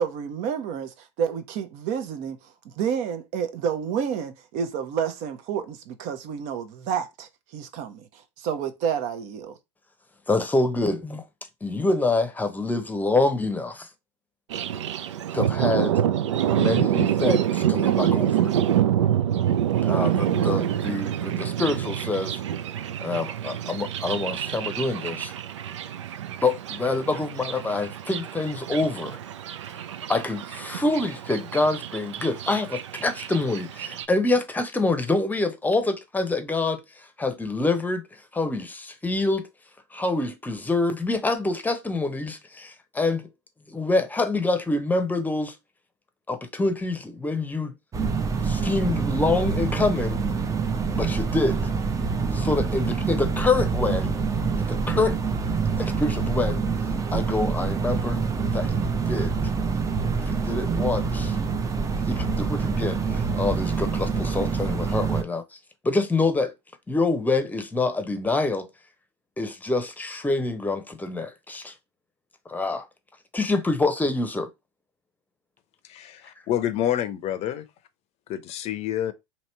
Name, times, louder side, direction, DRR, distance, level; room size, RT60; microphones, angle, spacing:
voice 1, 0.0-2.4 2.6-9.6, right 7 dB, 55° right, 0.8 m, -29 dB
voice 2, 10.3-11.2 11.6-13.9 15.3-16.0 16.5-18.5 19.8-22.4 23.0-25.3 26.4-29.2 29.7-29.8 30.1-39.5 39.9-43.3 43.7-45.6 46.3-47.7 48.4-50.2 51.0-51.6 52.3-54.2 54.6-55.2 55.8-58.2 58.5-59.3 60.2-61.4 62.1-65.6 65.8-66.5 66.9-68.7 69.4-71.7 72.5-72.9 73.3-74.5, left 3 dB, 10° left, 0.8 m, -26 dB
Thunder, 14.5-34.1, right 10 dB, 80° right, 0.4 m, -26 dB
sound 1, 47.9-65.2, right 5 dB, 20° right, 0.6 m, -26 dB
voice 3, 75.9-77.6 78.3-79.1, left 11 dB, 45° left, 0.6 m, -28 dB
2.9 x 2.8 x 4.4 m
hypercardioid pair, 85°, 15 cm